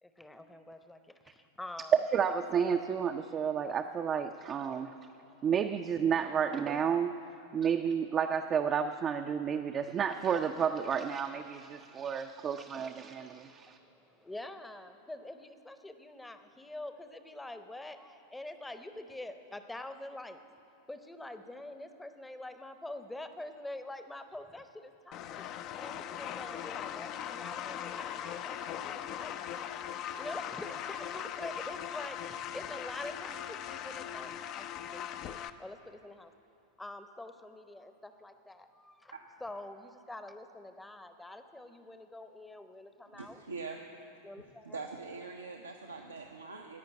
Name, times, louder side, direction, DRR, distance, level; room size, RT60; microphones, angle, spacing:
voice 1, 0.0-2.0 12.7-20.4 20.9-29.5 30.2-35.2 35.6-36.3 36.8-39.1 39.4-43.4 44.2-44.8, left 1 dB, 5° left, 9 dB, 0.8 m, -46 dB
voice 2, 2.1-4.9 5.4-7.1 7.5-13.8, right 7 dB, 25° right, 4 dB, 0.5 m, -31 dB
sound 1, 25.1-35.5, left 10 dB, 40° left, 0.5 m, -40 dB
voice 3, 43.1-43.8 44.6-46.8, right 4 dB, 75° right, 2 dB, 0.7 m, -43 dB
17.0 x 5.7 x 8.8 m, 2.8 s
figure-of-eight pair, 90°, 0 cm